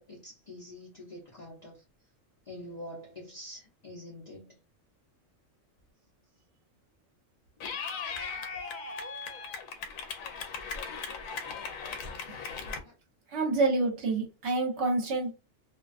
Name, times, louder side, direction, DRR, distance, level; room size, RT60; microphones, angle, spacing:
voice 1, 0.0-1.8 2.5-4.5 7.6-7.7, left 1 dB, 40° left, 0.7 m, -45 dB
Clapping / Cheering, 7.6-12.8, left 5 dB, 85° left, 1.0 m, -38 dB
voice 2, 13.3-15.3, right 3 dB, 60° right, 1.0 m, -27 dB
2.5 x 2.2 x 2.4 m
omnidirectional pair, 1.4 m